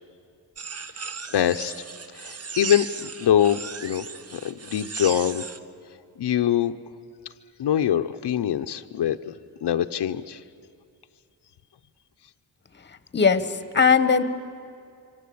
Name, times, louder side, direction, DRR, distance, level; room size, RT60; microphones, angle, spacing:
sound 1, 0.6-5.6, right 5 dB, 35° right, 0.8 m, -36 dB
voice 1, 1.0-1.8 2.1-4.0 4.3-5.4 6.2-6.7 7.6-9.3 9.6-10.4, left 10 dB, 80° left, 8 dB, 0.8 m, -24 dB
voice 2, 13.1-14.2, left 5 dB, 25° left, 12 dB, 1.0 m, -19 dB
27.0 x 24.5 x 8.5 m, 2.4 s
wide cardioid pair, 170°, 41 cm